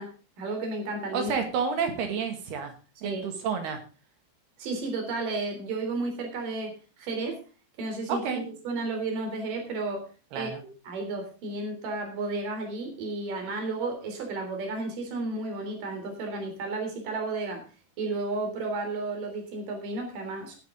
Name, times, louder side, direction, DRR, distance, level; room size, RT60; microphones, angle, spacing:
voice 1, 0.0-1.3 3.0-3.2 4.6-7.4 7.8-10.1 10.3-17.7 18.0-20.6, right 3 dB, 50° right, 4 dB, 4.9 m, -33 dB
voice 2, 1.1-2.7 3.0-3.8 8.1-8.4 10.3-10.6, right 6 dB, 70° right, 5 dB, 4.0 m, -30 dB
19.5 x 8.6 x 3.8 m, 0.34 s
omnidirectional pair, 5.0 m